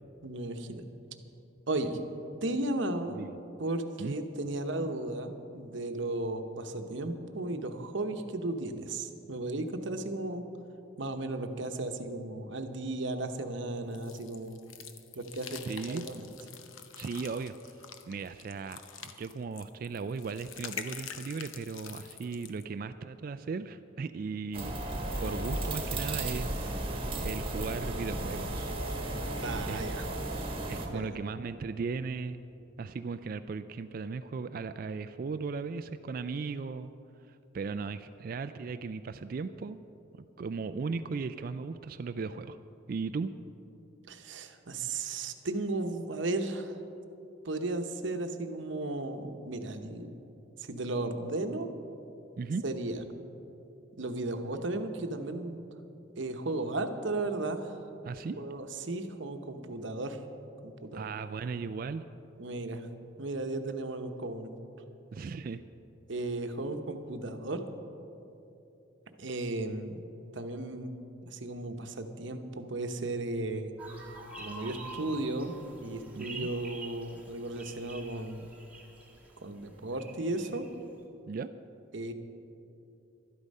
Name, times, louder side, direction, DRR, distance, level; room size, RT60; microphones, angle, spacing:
voice 1, 0.2-0.9 1.7-2.0 2.4-3.2 3.6-10.4 11.0-14.6 15.1-16.3 29.4-30.1 30.9-31.1 44.1-46.8 47.4-50.1 50.6-51.7 52.6-53.0 54.0-55.6 56.2-57.8 58.4-60.2 60.6-61.1 62.4-62.9 63.2-64.5 66.1-67.6 69.2-70.9 71.3-73.7 74.4-75.6 75.8-78.5 79.4-80.7 81.9-82.1, right 2 dB, 65° right, 6 dB, 0.9 m, -35 dB
sound 1, 13.9-22.6, left 8 dB, 85° left, 0.8 m, -46 dB
voice 2, 15.7-16.1 17.0-17.5 18.1-24.7 25.2-28.7 29.7-29.8 30.7-32.4 32.8-36.9 37.3-39.8 40.4-42.6 42.9-43.3 52.4-52.6 58.0-58.4 60.9-62.0 65.1-65.6 76.2-76.5 81.3-81.5, right 4 dB, 45° right, 11 dB, 0.3 m, -37 dB
sound 2, 24.5-30.9, right 1 dB, 30° right, 1.4 m, -34 dB
sound 3, 73.8-80.7, right 3 dB, 5° right, 1.4 m, -47 dB
12.5 x 11.5 x 5.4 m, 2.8 s
head